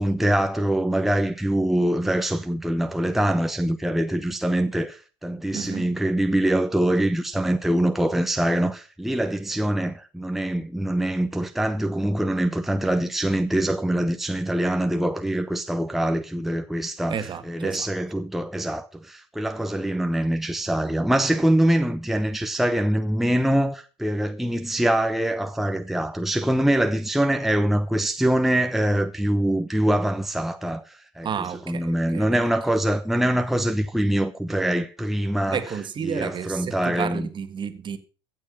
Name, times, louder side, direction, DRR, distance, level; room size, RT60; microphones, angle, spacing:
voice 1, 0.0-35.6 36.0-37.3, right 1 dB, ahead, 0.9 m, -24 dB
voice 2, 5.5-6.0 17.1-17.9 31.2-32.3 35.5-38.0, right 7 dB, 35° right, 1.8 m, -31 dB
15.0 x 7.7 x 5.7 m
hypercardioid pair, 80°, 14 cm